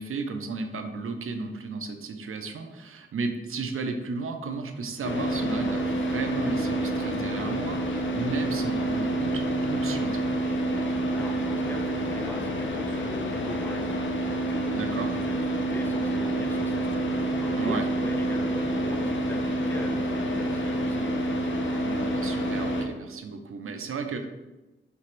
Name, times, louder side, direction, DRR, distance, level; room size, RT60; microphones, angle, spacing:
voice 1, 0.0-10.4 14.7-15.1 17.6-17.8 21.8-24.3, right 4 dB, 85° right, 6 dB, 0.5 m, -34 dB
Car / Idling, 5.0-22.8, right 1 dB, 65° left, 0.7 m, -28 dB
voice 2, 11.1-14.0 14.3-16.9 17.4-21.1, left 1 dB, 10° left, 2 dB, 0.7 m, -40 dB
3.4 x 3.0 x 4.4 m, 1.1 s
cardioid pair, 55°, 21 cm